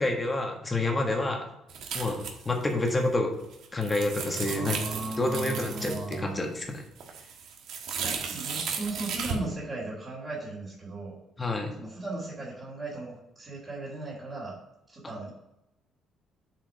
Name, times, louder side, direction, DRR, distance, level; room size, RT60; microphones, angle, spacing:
voice 1, 0.0-1.5 1.9-3.3 3.7-4.8 5.2-5.9 6.2-6.8 11.4-11.7, left 2 dB, 15° left, 2 dB, 1.5 m, -28 dB
sound 1, 1.7-2.9 3.4-6.2 6.6-9.4, right 6 dB, 70° right, 1.4 m, -35 dB
voice 2, 4.5-6.5 8.0-11.2 11.8-14.6 14.9-15.3, right 2 dB, 25° right, -8 dB, 2.7 m, -37 dB
7.8 x 4.9 x 4.9 m, 0.85 s
cardioid pair, 150°, 0 cm